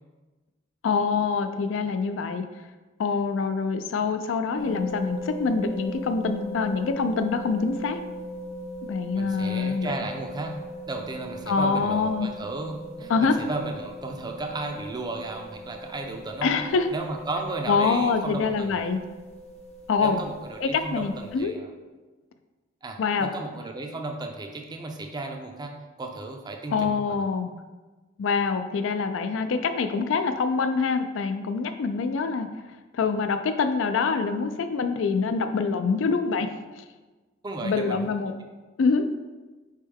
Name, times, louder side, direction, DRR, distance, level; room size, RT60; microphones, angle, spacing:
voice 1, 0.8-2.4 3.0-8.0 8.9-9.9 11.5-12.3 13.1-13.4 16.4-16.9 17.7-19.0 19.9-20.2 20.6-21.5 23.0-23.3 26.7-27.5 28.2-32.5 32.9-36.5 36.8-36.9 37.6-38.3 38.8-39.1, left 4 dB, 80° left, 9 dB, 0.4 m, -25 dB
sound 1, 4.6-21.4, equal, 35° left, 0.5 m, -39 dB
voice 2, 9.2-10.6 10.9-16.6 16.9-18.8 20.0-21.7 22.8-25.7 26.0-27.2 37.4-38.1, right 2 dB, 20° right, 3 dB, 0.4 m, -34 dB
4.4 x 3.3 x 3.4 m, 1.2 s
head